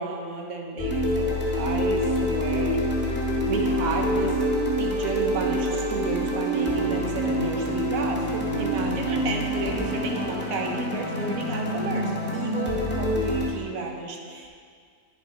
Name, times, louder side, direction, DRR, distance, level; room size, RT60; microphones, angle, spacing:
voice 1, 0.0-2.8 3.5-4.4 4.8-14.5, right 3 dB, 90° right, 2 dB, 1.2 m, -32 dB
sound 1, 0.8-13.5, equal, 10° left, 0.5 m, -26 dB
8.3 x 3.8 x 3.9 m, 2.1 s
omnidirectional pair, 1.5 m